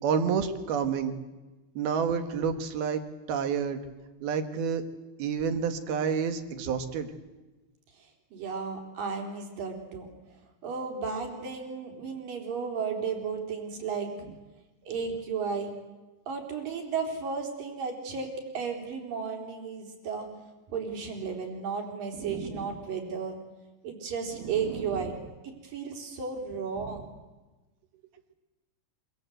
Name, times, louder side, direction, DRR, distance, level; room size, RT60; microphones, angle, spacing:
voice 1, 0.0-1.2 1.8-3.0 3.3-3.8 4.2-4.8 5.2-7.1 22.1-22.8 24.4-25.0 26.8-26.9, right 6 dB, 80° right, 8 dB, 3.7 m, -29 dB
voice 2, 8.3-10.1 10.6-14.1 14.9-15.7 16.3-18.3 18.5-20.3 20.7-23.4 23.8-25.1 25.6-27.1, right 5 dB, 65° right, 2 dB, 5.6 m, -34 dB
26.0 x 26.0 x 8.0 m, 1.1 s
omnidirectional pair, 4.3 m